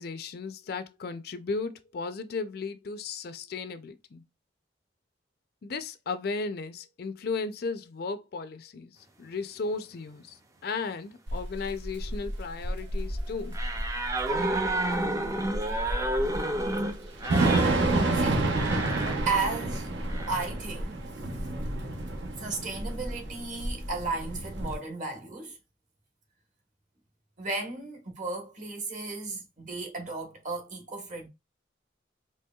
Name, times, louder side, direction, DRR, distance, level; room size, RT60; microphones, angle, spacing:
voice 1, 0.0-4.2 5.6-10.4 10.6-13.6, left 4 dB, 55° left, 0.4 m, -35 dB
Thunder / Rain, 11.3-24.7, right 2 dB, 75° right, 0.8 m, -30 dB
sound 1, 13.5-19.2 20.1-20.5, right 1 dB, 20° right, 0.4 m, -30 dB
voice 2, 18.1-18.5 19.2-19.9 20.3-21.0 22.4-25.6 27.4-31.3, right 3 dB, 45° right, 1.1 m, -34 dB
4.4 x 2.9 x 2.3 m
head